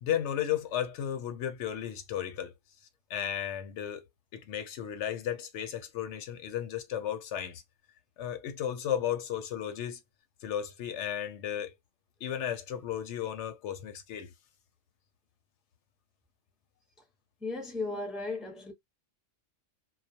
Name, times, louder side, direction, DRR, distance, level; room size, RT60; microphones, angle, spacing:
voice 1, 0.0-2.5 3.1-4.0 4.3-7.6 8.2-10.0 10.4-11.7 12.2-14.3, left 10 dB, 65° left, 0.8 m, -34 dB
voice 2, 17.4-18.7, left 3 dB, ahead, 0.6 m, -35 dB
2.3 x 2.1 x 2.7 m
omnidirectional pair, 1.4 m